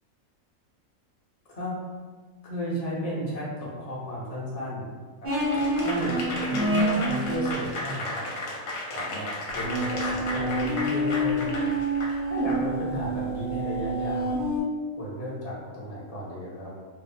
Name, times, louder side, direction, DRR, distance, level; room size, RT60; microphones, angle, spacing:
voice 1, 2.4-4.9 5.2-8.2 8.9-11.5 12.3-14.3 15.0-16.7, equal, 40° left, -6 dB, 0.5 m, -34 dB
sound 1, 5.2-7.5 9.6-14.6, right 1 dB, 55° right, 0.5 m, -27 dB
Applause / Crowd, 5.4-12.6, left 2 dB, 70° left, 1.0 m, -34 dB
3.0 x 2.0 x 2.6 m, 1.4 s
omnidirectional pair, 1.5 m